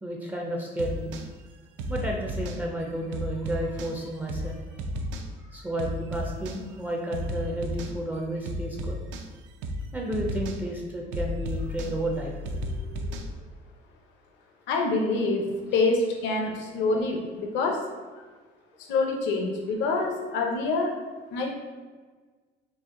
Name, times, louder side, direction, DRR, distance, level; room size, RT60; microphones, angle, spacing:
voice 1, 0.0-1.1 1.9-4.8 5.4-9.0 9.9-12.4, right 1 dB, 10° right, -1 dB, 0.4 m, -32 dB
sound 1, 0.8-1.3 1.8-2.6 3.1-3.9 4.3-4.5 4.8-5.3 5.8-6.6 7.1-7.9 8.5-9.3 9.6-9.8 10.1-10.6 11.1-13.3, equal, 80° right, 0.5 m, -33 dB
voice 2, 14.7-17.8 18.1-18.2 18.8-20.9 21.3-21.5, left 3 dB, 75° left, 2 dB, 0.7 m, -26 dB
4.2 x 2.8 x 3.5 m, 1.4 s
cardioid pair, 170°, 19 cm